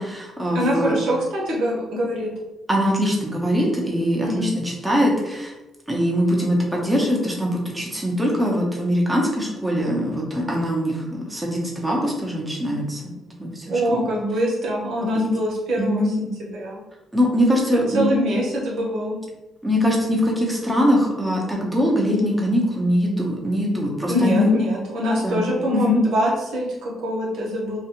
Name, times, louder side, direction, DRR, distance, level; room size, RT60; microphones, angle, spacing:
voice 1, 0.0-1.0 2.7-5.5 5.9-13.0 13.4-14.1 15.1-15.3 15.8-16.1 17.1-18.1 19.6-24.5 25.2-25.4 25.7-26.0, equal, 10° right, -2 dB, 0.8 m, -22 dB
voice 2, 0.5-2.3 4.2-4.5 13.7-16.8 17.7-19.1 24.1-27.8, equal, 75° right, -4 dB, 1.0 m, -24 dB
2.5 x 2.4 x 2.9 m, 1.1 s
cardioid pair, 90°, 0 cm